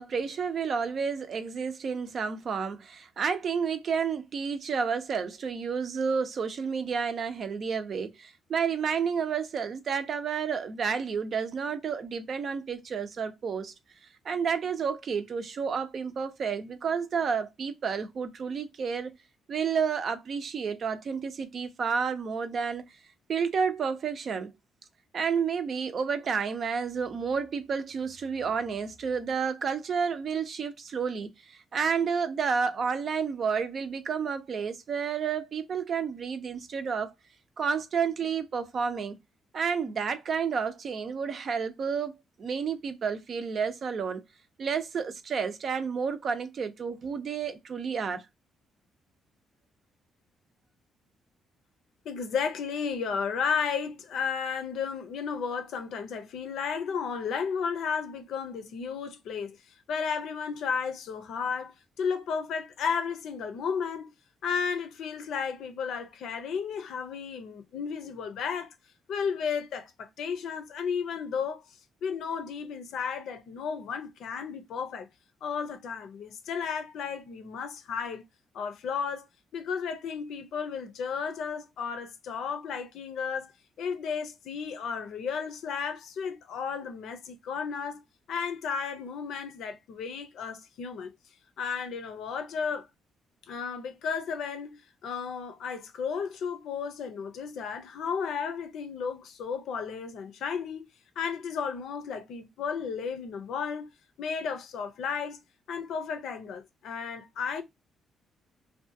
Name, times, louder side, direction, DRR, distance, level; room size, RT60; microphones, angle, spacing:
voice 1, 0.0-13.7 14.2-19.1 19.5-22.9 23.3-24.5 25.1-37.1 37.6-39.2 39.5-42.1 42.4-44.2 44.6-48.2, right 6 dB, 55° right, 0.6 m, -30 dB
voice 2, 52.0-59.6 59.9-64.1 64.4-68.7 69.1-71.6 72.0-75.1 75.4-78.2 78.5-79.3 79.5-83.5 83.8-88.0 88.3-91.1 91.6-92.9 93.5-100.9 101.2-103.9 104.2-105.4 105.7-107.6, left 6 dB, 75° left, 0.6 m, -33 dB
2.7 x 2.3 x 2.6 m
cardioid pair, 90°, 0 cm